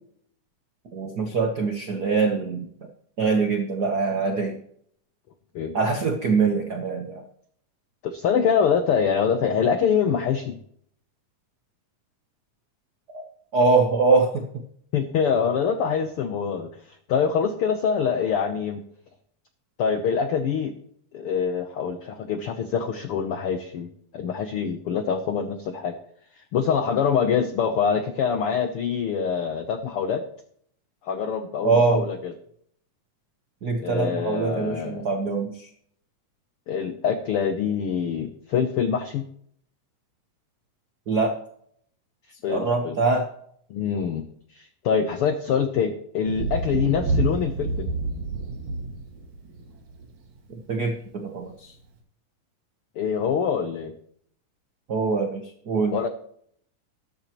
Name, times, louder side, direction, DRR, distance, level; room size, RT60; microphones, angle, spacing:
voice 1, 0.9-2.6 3.2-4.6 5.7-7.2 13.1-13.2 13.5-14.4 31.6-32.1 33.6-35.7 41.1-41.4 42.5-43.3 50.7-51.7 54.9-56.0, right 4 dB, 80° right, 4 dB, 0.8 m, -23 dB
voice 2, 8.0-10.6 14.9-18.8 19.8-20.7 21.1-25.9 26.4-30.2 31.0-32.3 33.8-35.0 36.7-39.2 42.4-43.0 43.7-44.3 44.5-47.9 53.0-53.9 55.9-56.1, left 7 dB, 85° left, 8 dB, 1.2 m, -25 dB
Thunder, 46.3-50.2 51.4-51.5, right 3 dB, 60° right, 3.2 m, -28 dB
13.5 x 12.5 x 3.0 m, 0.65 s
omnidirectional pair, 3.7 m